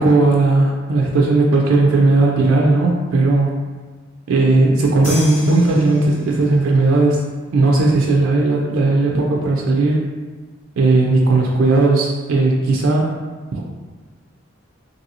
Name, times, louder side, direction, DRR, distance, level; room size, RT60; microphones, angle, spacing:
voice 1, 0.0-3.5 4.3-7.2 7.5-10.1 10.8-13.2 13.5-13.6, right 2 dB, 80° right, -1 dB, 0.4 m, -16 dB
sound 1, 5.0-6.6, left 2 dB, 35° left, 0.8 m, -33 dB
2.7 x 2.7 x 2.7 m, 1.4 s
head